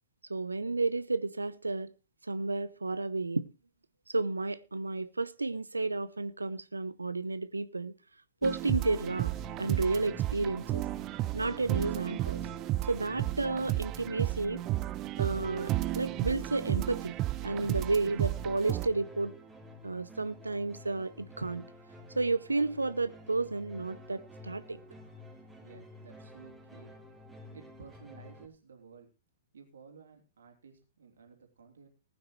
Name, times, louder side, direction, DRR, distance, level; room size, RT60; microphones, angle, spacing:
voice 1, 0.3-1.9 2.2-3.5 4.1-7.9 8.4-9.3 9.6-10.9 11.3-12.4 12.9-14.6 15.2-17.2 17.4-19.4 19.8-21.7 22.1-24.8, right 3 dB, 85° right, 0.8 m, -32 dB
sound 1, 8.4-18.9, right 15 dB, 30° right, 0.6 m, -33 dB
sound 2, 9.3-28.5, left 1 dB, 5° right, 2.8 m, -51 dB
voice 2, 25.6-26.9 27.5-29.1 29.5-31.9, right 5 dB, 70° right, 3.0 m, -54 dB
19.0 x 9.3 x 3.1 m
figure-of-eight pair, 110°, 0 cm